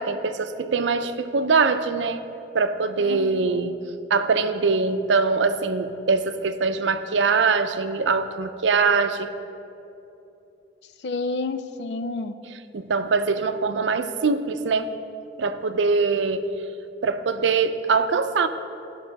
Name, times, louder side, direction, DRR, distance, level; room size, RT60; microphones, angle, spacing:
voice 1, 0.0-2.2 2.5-3.8 4.1-9.3 12.7-14.9 15.4-16.5 17.0-18.5, right 4 dB, 90° right, 10 dB, 0.5 m, -22 dB
voice 2, 3.0-3.7 11.0-12.3, left 3 dB, 70° left, 10 dB, 0.5 m, -30 dB
16.0 x 6.1 x 4.0 m, 2.9 s
head